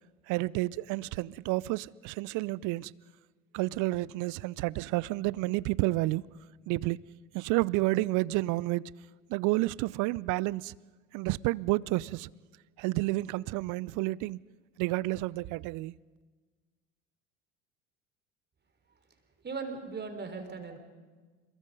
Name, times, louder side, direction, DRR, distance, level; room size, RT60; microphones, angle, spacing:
voice 1, 0.3-2.9 3.5-6.2 6.7-7.0 7.3-8.9 9.3-10.7 11.1-12.3 12.8-14.4 14.8-15.9, right 20 dB, 50° right, 0.6 m, -30 dB
voice 2, 19.4-20.8, right 4 dB, 25° right, 3.7 m, -38 dB
26.5 x 22.5 x 5.3 m
hypercardioid pair, 75°, 38 cm